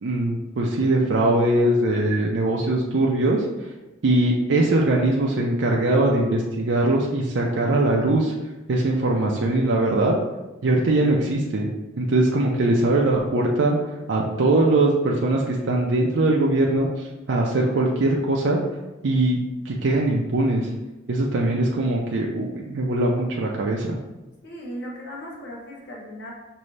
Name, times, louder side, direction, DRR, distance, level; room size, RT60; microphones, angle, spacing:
voice 1, 0.0-3.5 4.0-8.3 8.7-10.1 10.6-11.7 12.0-13.8 14.1-18.6 19.0-19.4 19.6-20.7 21.1-24.0, right 2 dB, 70° right, -2 dB, 0.5 m, -21 dB
voice 2, 24.4-26.3, equal, 55° left, -3 dB, 1.1 m, -37 dB
5.1 x 2.7 x 3.2 m, 1.1 s
head